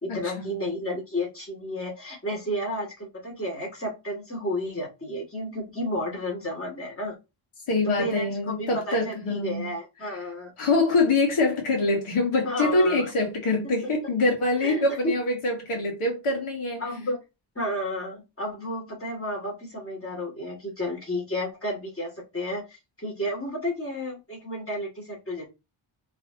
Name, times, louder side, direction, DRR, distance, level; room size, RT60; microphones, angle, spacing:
voice 1, 0.0-7.2 7.8-10.5 12.4-13.1 14.6-15.1 16.8-17.2 17.6-25.5, left 1 dB, 25° left, 2.6 m, -32 dB
voice 2, 7.7-9.7 10.1-10.2 10.6-16.9, left 2 dB, 85° left, 1.8 m, -24 dB
5.0 x 3.4 x 2.8 m
cardioid pair, 70°, 49 cm